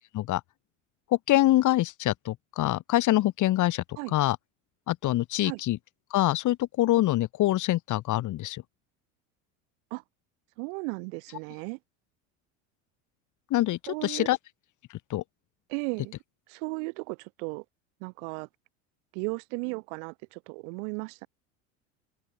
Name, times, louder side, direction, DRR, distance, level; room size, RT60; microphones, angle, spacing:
voice 1, 1.3-3.8 4.1-4.4 4.9-5.8 6.1-8.6 13.5-14.4 15.1-15.2, left 15 dB, 55° left, 5.4 m, -25 dB
voice 2, 10.6-11.8 13.9-14.3 15.7-16.2 16.5-17.6 18.0-18.5 19.1-21.3, right 37 dB, 75° right, 7.2 m, -35 dB
supercardioid pair, 100°, 36 cm